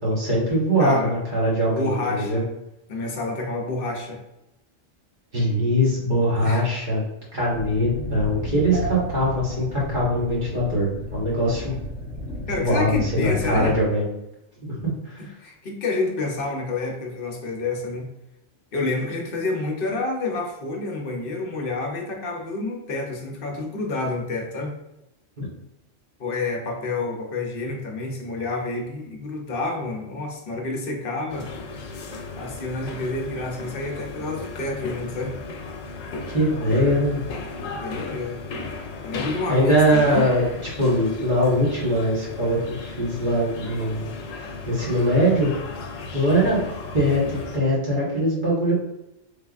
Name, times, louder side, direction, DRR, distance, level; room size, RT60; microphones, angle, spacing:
voice 1, 0.0-2.4 5.3-7.0 7.3-11.8 12.5-14.0 14.7-15.2 25.4-25.5 36.3-37.3 39.5-44.1 44.6-45.5 46.1-46.6 46.9-48.7, equal, 40° right, -6 dB, 1.3 m, -22 dB
voice 2, 0.8-1.1 1.7-2.5 2.9-4.2 6.4-6.6 12.5-13.8 15.2-18.1 18.7-24.7 26.2-31.5 32.4-35.3 37.6-38.4 39.0-40.2, left 3 dB, 55° left, 1 dB, 0.7 m, -29 dB
sound 1, 7.5-13.8, equal, 10° right, 0.7 m, -32 dB
sound 2, 31.3-47.6, left 3 dB, 85° left, 1.0 m, -35 dB
3.4 x 3.2 x 2.4 m, 0.89 s
omnidirectional pair, 1.3 m